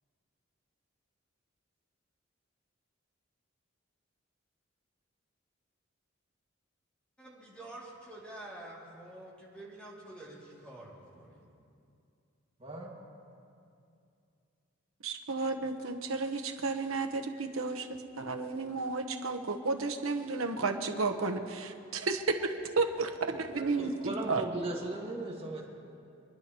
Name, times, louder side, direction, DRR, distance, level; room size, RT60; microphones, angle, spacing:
voice 1, 7.2-11.4, right 1 dB, 5° left, -6 dB, 2.6 m, -48 dB
voice 2, 12.6-12.9 23.5-25.6, right 2 dB, 30° right, -3 dB, 2.0 m, -37 dB
voice 3, 15.0-24.4, right 3 dB, 90° right, 5 dB, 1.1 m, -32 dB
27.0 x 11.0 x 3.0 m, 2.5 s
head